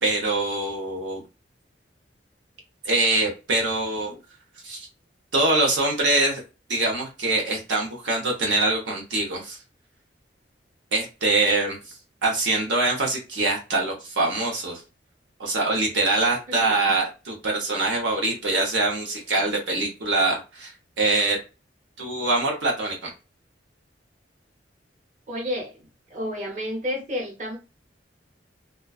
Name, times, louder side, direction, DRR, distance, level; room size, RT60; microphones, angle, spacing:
voice 1, 0.0-1.2 2.8-4.2 4.6-4.9 5.3-6.4 6.7-9.6 10.9-11.8 12.2-14.8 15.4-20.7 21.0-21.4 22.0-23.1, right 2 dB, 85° right, 0.7 m, -24 dB
voice 2, 25.3-25.8 26.1-27.6, left 1 dB, 45° right, 0.9 m, -30 dB
2.4 x 2.2 x 2.3 m
head